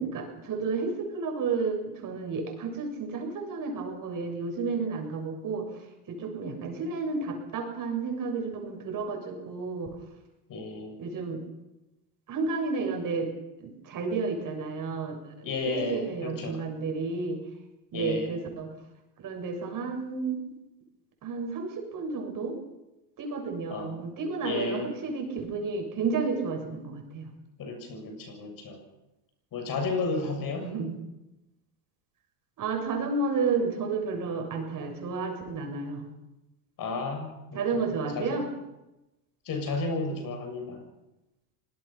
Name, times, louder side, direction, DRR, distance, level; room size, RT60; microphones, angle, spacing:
voice 1, 0.0-10.0 11.0-11.4 12.3-13.3 13.6-17.4 17.9-18.7 19.2-20.4 21.2-22.6 23.2-27.3 30.1-31.0 32.6-36.1 37.5-38.5, right 4 dB, 40° right, 3 dB, 7.2 m, -31 dB
voice 2, 10.5-10.9 15.4-16.6 17.9-18.3 23.7-24.0 24.4-24.9 27.6-28.8 29.5-30.7 36.8-38.4 39.5-40.9, left 3 dB, 45° left, 5 dB, 7.0 m, -33 dB
24.5 x 19.5 x 5.9 m, 0.96 s
supercardioid pair, 110°, 47 cm